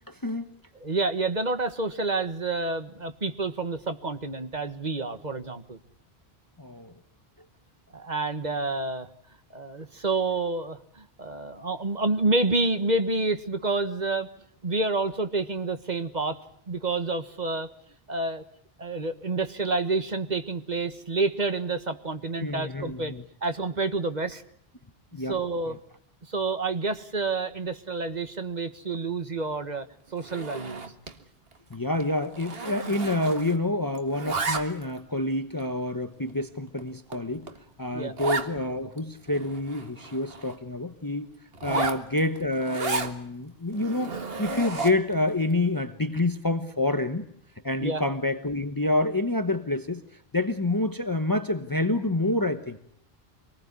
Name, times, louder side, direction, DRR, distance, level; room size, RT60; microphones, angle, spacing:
voice 1, 0.1-0.5 6.6-6.9 22.4-23.2 25.1-25.4 31.7-37.5 37.8-41.3 41.6-47.2 47.6-50.0 50.3-52.8, left 2 dB, 20° left, 9 dB, 1.1 m, -28 dB
voice 2, 0.7-5.8 7.9-9.1 9.5-14.3 14.6-16.4 16.7-17.7 18.1-18.4 18.8-23.1 23.4-24.4 25.3-25.8 26.3-29.8 30.1-30.9 37.9-38.1 41.7-41.9 47.8-48.0, right 3 dB, 45° right, 9 dB, 1.6 m, -28 dB
Zipper (clothing), 30.2-31.2 31.5-31.7 32.0-33.7 34.0-35.0 35.6-35.7 36.3-36.4 36.8-36.9 37.1-37.2 37.5-37.6 38.2-38.5 39.0-39.1 39.3-40.6 41.5-43.1 43.7-45.1, right 4 dB, 70° right, 1.9 m, -33 dB
25.5 x 19.5 x 9.7 m, 0.68 s
omnidirectional pair, 1.0 m